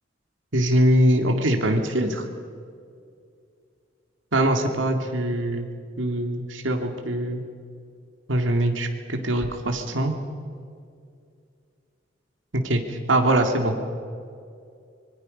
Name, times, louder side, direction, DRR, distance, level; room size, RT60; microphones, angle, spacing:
voice 1, 0.5-2.2 4.3-5.7 6.0-7.4 8.3-10.1 12.5-13.7, right 1 dB, 90° right, 4 dB, 2.4 m, -22 dB
25.0 x 23.0 x 5.3 m, 2.3 s
head